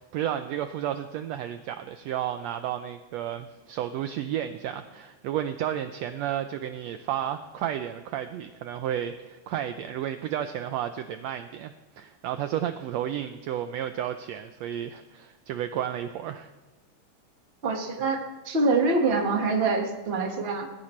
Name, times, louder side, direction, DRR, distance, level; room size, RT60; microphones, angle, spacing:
voice 1, 0.0-16.5, right 10 dB, 85° right, 9 dB, 1.5 m, -32 dB
voice 2, 17.6-20.7, right 3 dB, 35° right, 2 dB, 1.0 m, -25 dB
19.0 x 16.0 x 3.2 m, 1.2 s
omnidirectional pair, 3.7 m